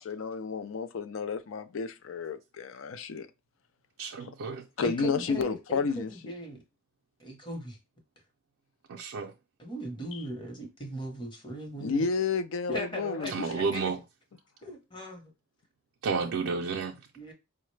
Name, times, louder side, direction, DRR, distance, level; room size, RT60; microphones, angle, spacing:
voice 1, 0.0-3.3 4.8-6.1 10.1-10.2 11.8-13.5, left 5 dB, 75° left, 0.4 m, -31 dB
voice 2, 4.0-4.7 8.9-9.3 13.3-14.0 16.0-17.0, right 4 dB, 85° right, 0.4 m, -31 dB
voice 3, 4.8-6.6 7.2-7.8 9.6-12.1 12.7-13.8 14.6-15.3 17.2-17.3, right 1 dB, 25° left, 0.8 m, -38 dB
4.7 x 2.1 x 3.1 m
head